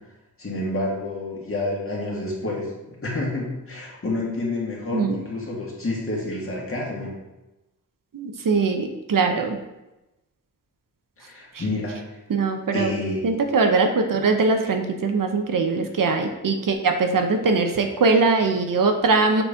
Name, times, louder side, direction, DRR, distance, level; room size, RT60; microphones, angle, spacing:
voice 1, 0.4-7.1 11.2-12.0 12.7-13.2, left 2 dB, 40° left, -3 dB, 1.8 m, -29 dB
voice 2, 8.1-9.6 12.3-12.9 13.2-19.4, right 4 dB, 70° right, 5 dB, 0.7 m, -21 dB
6.9 x 4.1 x 3.5 m, 0.99 s
wide cardioid pair, 110°, 35 cm